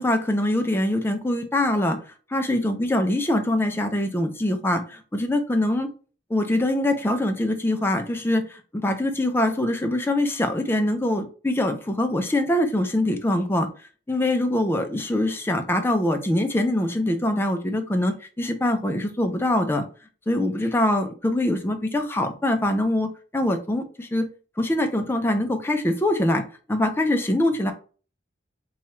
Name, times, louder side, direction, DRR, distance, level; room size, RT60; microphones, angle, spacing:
voice 1, 0.0-2.0 2.3-5.9 6.3-13.7 14.1-19.8 20.3-24.3 24.6-26.4 26.7-27.7, left 1 dB, 15° left, 5 dB, 0.5 m, -23 dB
3.0 x 2.3 x 4.3 m, 0.38 s
head